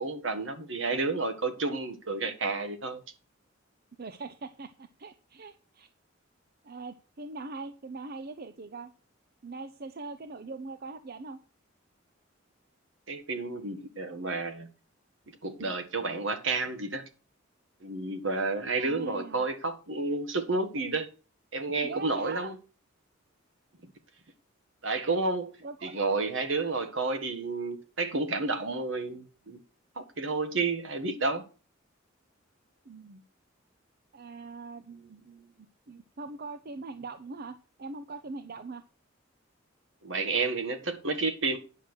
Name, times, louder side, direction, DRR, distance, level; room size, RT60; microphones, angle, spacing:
voice 1, 0.0-3.0 13.1-14.7 15.4-17.0 17.8-21.1 21.5-22.5 24.8-25.5 25.8-29.6 29.9-31.4 40.0-41.6, right 3 dB, 70° right, 1.6 m, -30 dB
voice 2, 4.0-5.9 6.6-8.9 9.4-11.4 18.8-19.4 21.8-22.5 25.6-25.9 32.8-33.2 34.1-38.8, right 3 dB, 50° right, 0.6 m, -42 dB
9.5 x 6.6 x 6.2 m
head